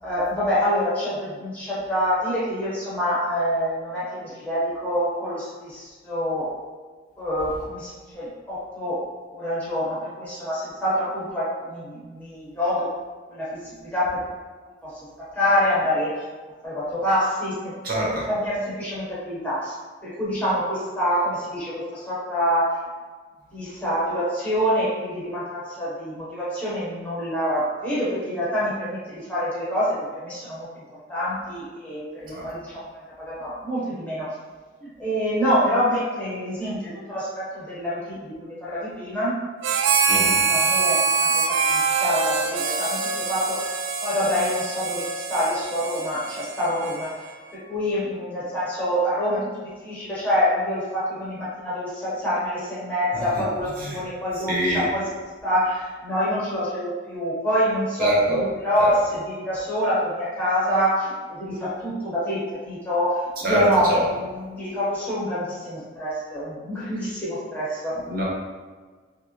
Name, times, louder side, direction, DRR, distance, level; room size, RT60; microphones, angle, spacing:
voice 1, 0.0-6.5 7.2-9.0 9.3-12.9 13.3-14.2 14.8-16.2 16.6-17.7 18.1-19.7 20.0-22.8 23.5-30.7 31.1-32.8 33.2-34.3 34.8-39.5 40.4-43.7 44.0-47.1 47.7-55.0 55.4-68.0, equal, 10° left, -10 dB, 0.9 m, -26 dB
voice 2, 17.8-18.3 32.3-32.5 40.1-40.4 53.1-53.2 53.8-54.0 54.5-54.9 58.0-58.4 58.8-58.9 63.4-64.0 68.1-68.2, right 1 dB, 50° right, -5 dB, 0.8 m, -24 dB
Harmonica, 39.6-47.4, right 5 dB, 90° right, 0.3 m, -24 dB
3.2 x 2.6 x 3.0 m, 1.4 s
head